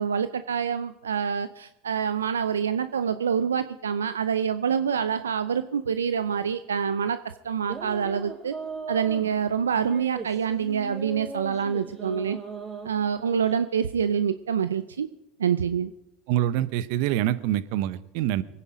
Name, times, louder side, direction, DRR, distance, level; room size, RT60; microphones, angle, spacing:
voice 1, 0.0-7.2 7.4-8.5 8.9-12.4 12.8-15.1 15.4-15.9, right 7 dB, 90° right, 12 dB, 0.5 m, -26 dB
sound 1, 7.6-13.6, right 4 dB, 35° right, 6.0 m, -39 dB
voice 2, 16.3-18.4, right 12 dB, 65° right, 15 dB, 0.8 m, -25 dB
23.5 x 9.9 x 5.0 m, 0.89 s
hypercardioid pair, 80°, 0 cm